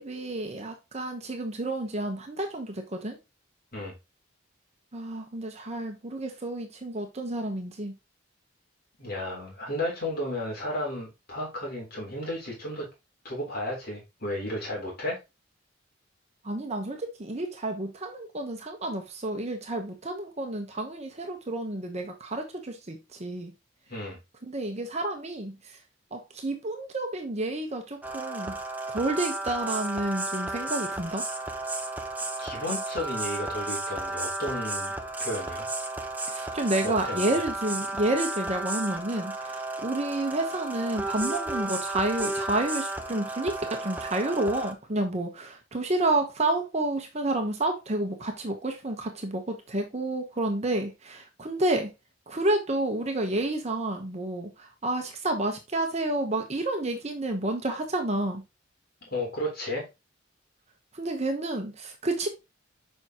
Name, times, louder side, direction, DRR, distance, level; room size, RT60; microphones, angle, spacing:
voice 1, 0.0-3.2 4.9-7.9 16.4-23.5 24.5-25.8 26.1-28.6 28.9-31.2 36.3-51.9 52.3-58.4 60.9-62.3, right 2 dB, 35° right, 1.0 m, -30 dB
voice 2, 9.0-12.9 13.2-15.2 23.9-24.2 32.4-35.7 36.8-37.3 59.0-59.9, left 1 dB, 50° left, 3.6 m, -33 dB
sound 1, 28.0-44.7, right 2 dB, 10° right, 0.8 m, -33 dB
7.1 x 5.6 x 2.9 m
head